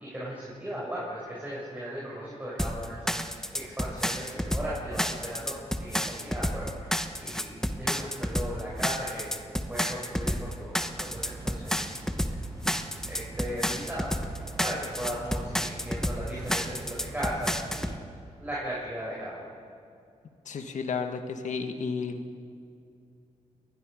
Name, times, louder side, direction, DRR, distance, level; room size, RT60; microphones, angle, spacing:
voice 1, 0.0-9.4 9.7-12.0 13.1-17.9 18.4-19.5, equal, 15° right, -7 dB, 7.2 m, -37 dB
sound 1, 2.6-18.0, equal, 5° left, 1.2 m, -30 dB
sound 2, 10.8-17.9, right 2 dB, 30° right, 5.5 m, -44 dB
voice 2, 20.5-22.2, left 5 dB, 70° left, 6 dB, 1.9 m, -32 dB
29.0 x 20.5 x 5.3 m, 2.5 s
cardioid pair, 80°, 13 cm